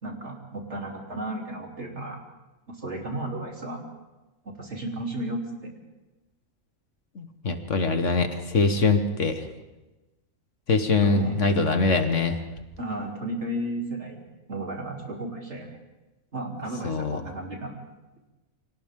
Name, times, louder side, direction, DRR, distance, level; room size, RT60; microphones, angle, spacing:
voice 1, 0.0-2.2 2.7-3.8 4.4-5.7 11.0-11.4 12.8-14.2 14.5-15.7 16.3-17.8, right 1 dB, 55° right, 0 dB, 3.7 m, -34 dB
voice 2, 7.2-9.5 10.7-12.4 16.8-17.2, left 3 dB, 60° left, 7 dB, 1.8 m, -23 dB
29.5 x 24.5 x 3.8 m, 1.1 s
omnidirectional pair, 1.4 m